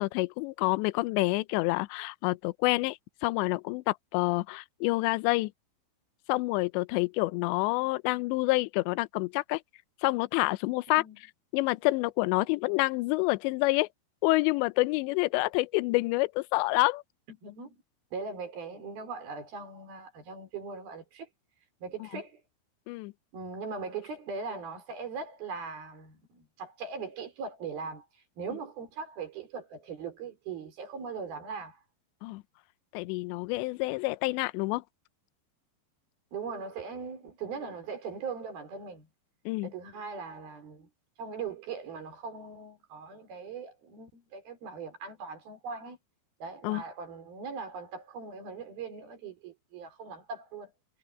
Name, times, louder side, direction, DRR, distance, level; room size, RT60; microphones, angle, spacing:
voice 1, 0.0-5.5 6.3-9.6 10.0-11.0 11.5-13.9 14.2-17.0 22.0-22.1 22.9-23.1 32.2-32.4 32.9-34.8 39.5-39.7 46.6-46.8, left 22 dB, 85° left, 2.9 m, -28 dB
voice 2, 17.4-17.7 18.1-21.3 21.8-22.4 23.3-28.1 28.4-31.8 36.3-39.1 39.6-40.9 41.2-46.0 46.4-50.7, right 5 dB, 55° right, 5.8 m, -40 dB
omnidirectional pair, 5.2 m